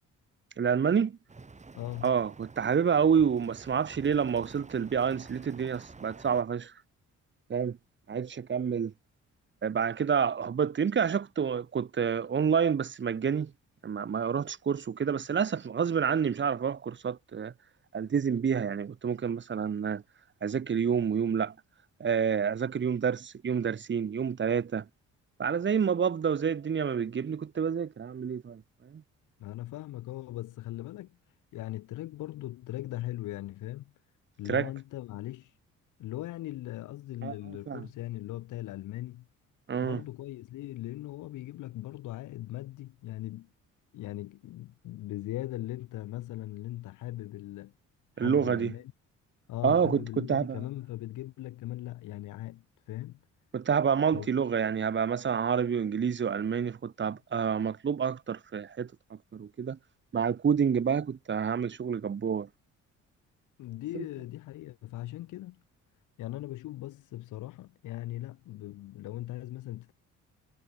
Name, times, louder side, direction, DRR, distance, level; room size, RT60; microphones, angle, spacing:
voice 1, 0.6-1.2 2.0-6.7 7.5-7.8 8.1-8.9 9.6-13.5 13.8-17.5 17.9-20.0 20.4-21.5 22.0-24.8 25.4-28.6 28.9-29.0 34.5-34.7 37.2-37.9 39.7-40.0 48.2-48.7 49.6-50.6 53.5-59.8 60.1-62.5 63.9-64.0, right 7 dB, 40° right, 1.4 m, -28 dB
sound 1, 1.3-6.4, right 3 dB, 25° right, 3.1 m, -50 dB
voice 2, 1.7-2.1 29.4-31.2 31.5-33.9 34.4-35.5 36.0-39.3 39.8-43.5 43.9-47.7 48.2-48.9 49.5-53.2 54.1-54.3 63.6-65.6 66.2-69.9, left 15 dB, 85° left, 2.4 m, -39 dB
cardioid pair, 90°, 30 cm